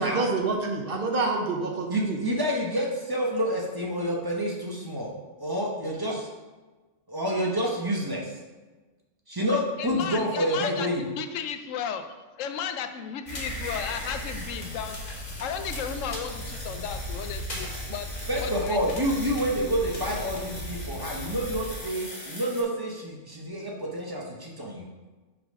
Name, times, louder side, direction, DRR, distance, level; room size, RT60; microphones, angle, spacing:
voice 1, 0.0-2.2, right 3 dB, 55° right, 2 dB, 0.8 m, -27 dB
voice 2, 1.9-5.1 5.4-6.3 7.1-8.3 9.3-11.0 18.3-24.9, equal, 20° right, -2 dB, 0.8 m, -28 dB
voice 3, 9.5-18.1 18.4-18.9, left 8 dB, 90° left, 8 dB, 1.0 m, -35 dB
sound 1, 13.3-22.6, equal, 35° left, 1.4 m, -36 dB
5.7 x 4.0 x 5.3 m, 1.3 s
omnidirectional pair, 1.3 m